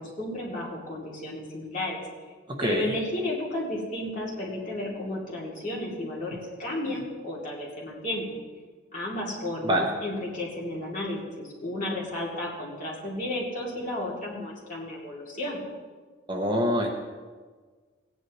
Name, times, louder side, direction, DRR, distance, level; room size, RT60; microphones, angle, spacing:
voice 1, 0.0-2.0 2.6-8.3 8.9-15.6, left 1 dB, 40° left, -5 dB, 2.8 m, -33 dB
voice 2, 2.5-2.9 9.6-9.9 16.3-16.9, equal, 25° right, 2 dB, 0.8 m, -25 dB
17.0 x 9.7 x 3.1 m, 1.5 s
head